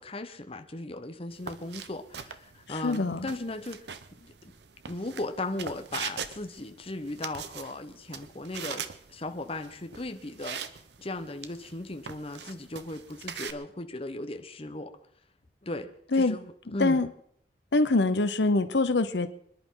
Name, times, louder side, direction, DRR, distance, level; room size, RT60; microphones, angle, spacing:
voice 1, 0.0-3.9 4.1-4.5 4.9-10.6 11.0-15.0 15.6-17.0, left 2 dB, 35° left, 7 dB, 1.0 m, -37 dB
sound 1, 1.3-13.5, right 7 dB, 75° right, 0.9 m, -42 dB
voice 2, 2.8-3.3 16.1-16.4 16.8-17.1 17.7-19.3, left 2 dB, 80° left, 11 dB, 0.9 m, -24 dB
26.0 x 11.0 x 3.9 m, 0.66 s
head